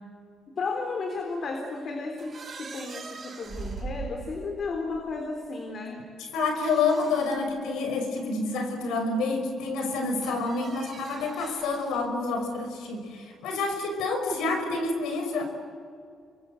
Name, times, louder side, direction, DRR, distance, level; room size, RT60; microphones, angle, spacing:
voice 1, 0.5-6.1, left 3 dB, 50° left, 4 dB, 3.8 m, -33 dB
sound 1, 2.2-5.0 6.6-7.5 8.2-8.3 10.2-12.1, right 4 dB, 35° right, 5.9 m, -41 dB
voice 2, 6.2-15.4, left 3 dB, 90° left, 6 dB, 5.6 m, -28 dB
27.5 x 23.0 x 7.8 m, 2.3 s
cardioid pair, 90°, 0 cm